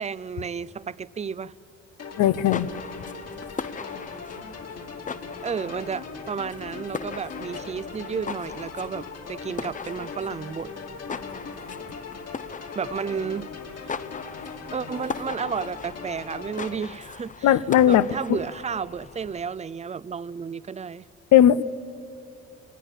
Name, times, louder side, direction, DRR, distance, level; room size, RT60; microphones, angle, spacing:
voice 1, 0.0-1.5 5.4-10.7 12.8-13.5 13.8-13.9 14.7-17.6 17.9-21.1, right 6 dB, 25° right, 0.5 m, -32 dB
sound 1, 2.0-16.8, left 5 dB, 55° left, 2.7 m, -39 dB
voice 2, 2.2-2.7 17.4-18.4 21.3-21.6, left 11 dB, 75° left, 0.7 m, -18 dB
sound 2, 2.3-19.6, left 5 dB, 25° left, 0.7 m, -39 dB
25.5 x 19.5 x 7.4 m
cardioid pair, 90°, 30 cm